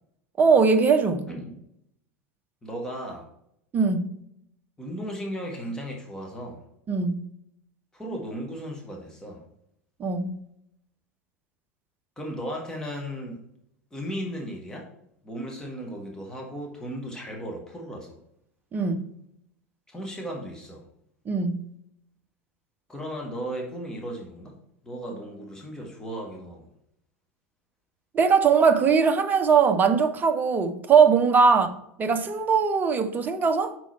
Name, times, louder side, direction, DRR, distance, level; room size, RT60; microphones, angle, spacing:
voice 1, 0.4-1.2 3.7-4.2 6.9-7.2 10.0-10.4 18.7-19.1 21.3-21.7 28.1-31.7 32.0-33.8, right 5 dB, 25° right, 0.7 m, -21 dB
voice 2, 1.3-1.6 2.6-3.3 4.8-6.6 7.9-9.4 12.2-13.4 13.9-14.9 15.2-18.2 19.9-20.8 22.9-24.6 24.8-26.6 31.5-31.6, equal, 10° left, 1.5 m, -35 dB
6.2 x 4.6 x 4.5 m
figure-of-eight pair, 80°, 8 cm